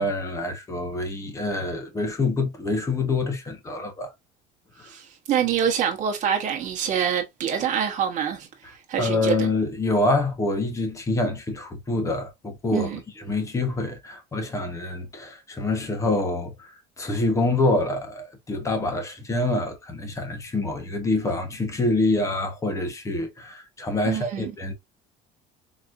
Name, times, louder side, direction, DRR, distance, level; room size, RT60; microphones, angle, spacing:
voice 1, 0.0-4.1 4.8-4.9 9.0-24.7, left 2 dB, 15° left, 1.0 m, -26 dB
voice 2, 4.8-8.5 8.9-9.5 12.7-13.0 24.1-24.5, right 8 dB, 45° right, 1.3 m, -25 dB
4.0 x 3.0 x 2.5 m
cardioid pair, 150°, 17 cm